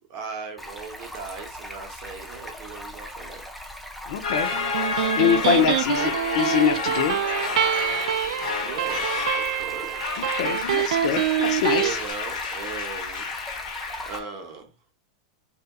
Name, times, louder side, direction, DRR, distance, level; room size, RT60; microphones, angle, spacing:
voice 1, 0.1-3.4 8.6-10.3 11.7-13.3 14.1-14.7, right 5 dB, 35° right, 0.8 m, -38 dB
Stream, 0.6-14.2, equal, ahead, 0.3 m, -40 dB
voice 2, 4.1-4.5 5.2-7.2 10.4-12.0, left 8 dB, 55° left, 0.6 m, -24 dB
sound 1, 4.2-14.2, left 5 dB, 75° left, 1.0 m, -30 dB
Electric guitar, 4.5-11.9, right 11 dB, 85° right, 0.3 m, -26 dB
4.0 x 2.7 x 2.2 m
supercardioid pair, 175°, 4 cm